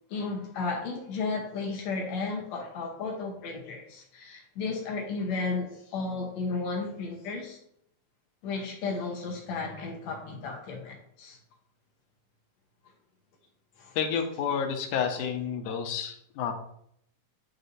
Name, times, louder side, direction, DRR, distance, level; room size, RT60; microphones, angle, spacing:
voice 1, 0.1-7.6 8.4-11.4 13.8-14.0, left 4 dB, 70° left, 1 dB, 2.2 m, -34 dB
voice 2, 14.0-16.5, left 7 dB, 90° left, 4 dB, 2.3 m, -30 dB
9.4 x 4.3 x 2.7 m, 0.70 s
omnidirectional pair, 3.4 m